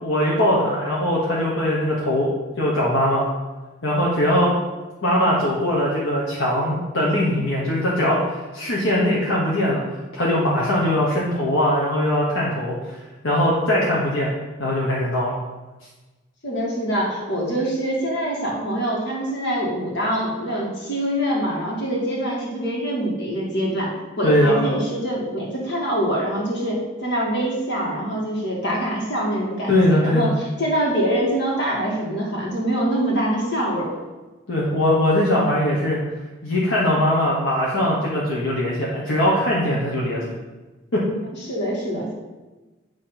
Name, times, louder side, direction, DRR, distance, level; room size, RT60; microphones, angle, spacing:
voice 1, 0.0-2.3 2.6-3.3 3.8-4.5 5.0-12.7 13.2-14.3 14.6-15.4 24.2-24.6 29.7-30.3 34.5-36.0 36.4-40.3 40.9-41.0, left 1 dB, 75° left, -5 dB, 1.3 m, -21 dB
voice 2, 16.4-23.9 24.2-34.0 41.4-42.1, right 1 dB, 55° left, -3 dB, 2.0 m, -24 dB
9.3 x 3.2 x 5.8 m, 1.2 s
head